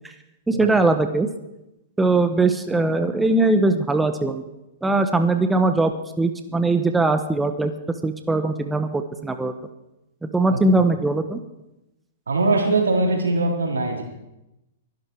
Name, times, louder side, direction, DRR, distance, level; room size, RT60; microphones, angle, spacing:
voice 1, 0.5-1.3 2.0-4.4 4.8-9.5 10.2-11.4, right 2 dB, 10° right, 8 dB, 1.2 m, -21 dB
voice 2, 12.3-14.0, right 2 dB, 85° right, 1 dB, 3.9 m, -21 dB
23.0 x 11.5 x 4.8 m, 0.92 s
hypercardioid pair, 115°, 0 cm